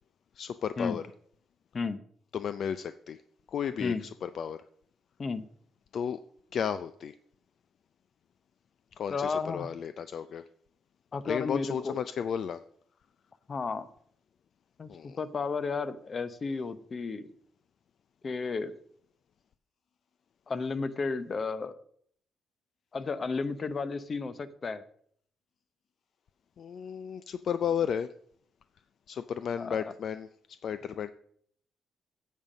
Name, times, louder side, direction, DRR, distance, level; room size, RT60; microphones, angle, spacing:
voice 1, 0.4-1.0 2.3-3.2 3.5-4.6 5.9-6.2 6.5-7.1 9.0-10.4 11.3-12.6 14.9-15.2 26.6-28.1 29.1-30.3 30.6-31.1, left 8 dB, 60° left, 13 dB, 0.4 m, -33 dB
voice 2, 9.1-9.7 11.1-12.0 13.5-13.9 14.8-17.3 18.2-18.7 20.5-21.7 22.9-24.8 29.6-29.9, left 4 dB, 40° left, 14 dB, 0.8 m, -33 dB
9.5 x 7.4 x 5.1 m, 0.63 s
cardioid pair, 90°, 0 cm